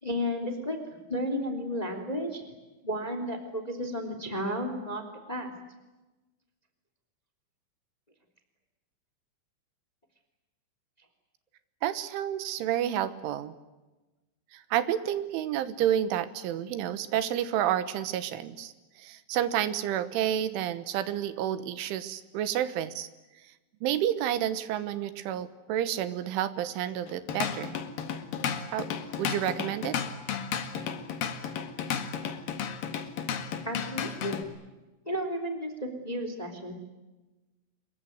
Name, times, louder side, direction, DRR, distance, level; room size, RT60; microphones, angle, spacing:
voice 1, 0.0-0.8 1.1-2.5 2.8-5.0 5.3-5.5 33.6-34.4 35.0-36.7, equal, 10° left, 7 dB, 2.4 m, -33 dB
voice 2, 11.8-13.5 14.5-18.7 19.0-23.1 23.8-27.8 28.7-28.9 29.2-30.0, right 11 dB, 80° right, 13 dB, 3.5 m, -30 dB
Drum kit / Drum, 27.1-34.4, left 7 dB, 55° left, 3.0 m, -33 dB
26.0 x 22.5 x 9.4 m, 1.1 s
omnidirectional pair, 5.7 m